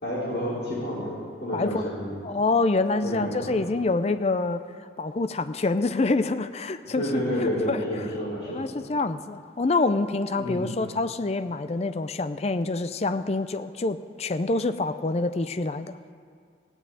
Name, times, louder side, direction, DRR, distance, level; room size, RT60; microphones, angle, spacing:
voice 1, 0.0-1.1 1.4-2.1 3.0-3.5 7.0-8.6 10.4-10.6, equal, 50° left, -13 dB, 4.4 m, -29 dB
voice 2, 1.5-1.8 2.2-4.6 5.0-7.1 7.4-7.8 8.5-16.0, left 3 dB, 35° left, 12 dB, 0.4 m, -26 dB
16.0 x 6.4 x 9.0 m, 2.2 s
head